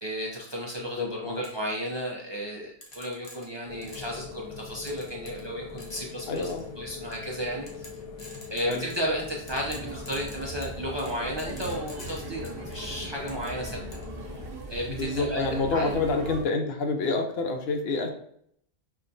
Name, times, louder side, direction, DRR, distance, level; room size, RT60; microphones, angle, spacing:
voice 1, 0.0-6.5 6.8-7.9 8.5-13.8 14.7-15.4 15.7-16.0, equal, 40° right, -3 dB, 0.4 m, -33 dB
voice 2, 0.9-1.4 6.3-6.8 8.6-8.8 14.9-18.1, left 3 dB, 75° left, 4 dB, 0.9 m, -28 dB
sound 1, 1.4-1.6 2.8-4.2 4.9-5.5 5.8-6.7 7.1-7.3 7.7-9.2 9.5-12.9 13.3-14.1, left 2 dB, 35° left, 0.8 m, -47 dB
sound 2, 3.7-14.5, left 4 dB, 55° left, 0.4 m, -42 dB
sound 3, 9.5-16.4, right 2 dB, 80° right, 1.1 m, -39 dB
5.6 x 2.2 x 2.6 m, 0.67 s
omnidirectional pair, 1.1 m